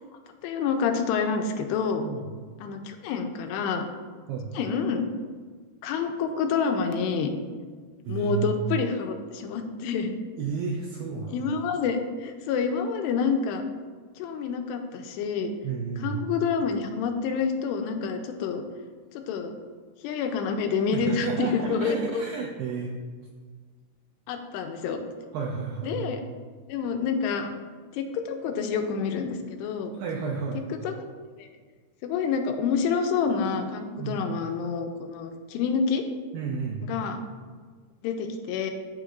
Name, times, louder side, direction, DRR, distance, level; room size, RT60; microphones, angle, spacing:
voice 1, 0.4-2.0 2.6-3.9 4.6-5.1 5.8-7.3 8.1-10.1 11.3-13.7 14.2-15.5 16.0-18.6 19.1-19.5 20.0-22.3 24.3-25.0 25.8-26.2 26.7-27.5 27.9-29.9 30.7-30.9 31.4-31.5 32.0-36.0 36.8-37.2 38.0-38.7, left 5 dB, 85° left, 5 dB, 2.7 m, -28 dB
voice 2, 2.0-2.3 4.3-4.5 8.1-8.5 10.4-11.4 15.6-16.2 20.9-22.9 25.3-26.0 30.0-30.7 34.0-34.3 36.3-36.9, right 6 dB, 85° right, 0 dB, 2.0 m, -31 dB
13.0 x 5.1 x 2.6 m, 1.5 s
omnidirectional pair, 4.8 m